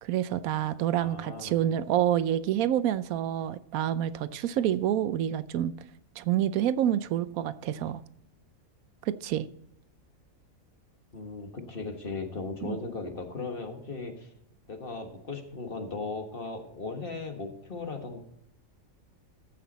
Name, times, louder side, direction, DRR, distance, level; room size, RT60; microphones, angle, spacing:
voice 1, 0.0-5.7 6.2-8.0 9.1-9.5 12.6-12.8, right 11 dB, 80° right, 14 dB, 1.0 m, -28 dB
voice 2, 1.0-1.5 11.1-14.3 14.7-18.2, left 3 dB, 40° left, 4 dB, 1.6 m, -37 dB
14.5 x 5.9 x 4.1 m, 0.75 s
omnidirectional pair, 1.5 m